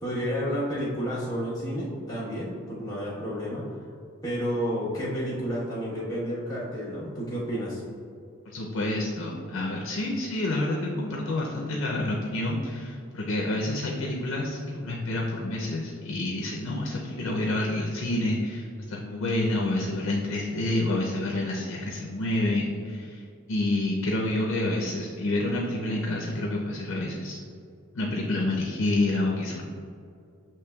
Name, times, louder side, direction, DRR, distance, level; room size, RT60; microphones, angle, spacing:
voice 1, 0.0-3.6 4.2-7.8, equal, 20° left, -8 dB, 1.1 m, -30 dB
voice 2, 8.5-23.2 23.5-27.4 27.9-29.6, left 1 dB, 75° left, -2 dB, 0.5 m, -28 dB
6.7 x 3.0 x 2.3 m, 2.4 s
head